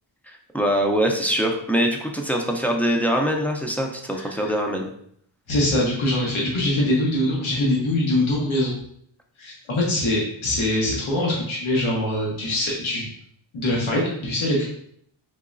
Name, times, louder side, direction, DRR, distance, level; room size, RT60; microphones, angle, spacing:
voice 1, 0.5-4.9, equal, 5° left, 1 dB, 0.4 m, -23 dB
voice 2, 4.1-4.5 5.5-8.7 9.4-13.1 13.5-14.6, left 1 dB, 80° left, -3 dB, 1.0 m, -23 dB
3.9 x 3.0 x 2.4 m, 0.66 s
wide cardioid pair, 110°, 47 cm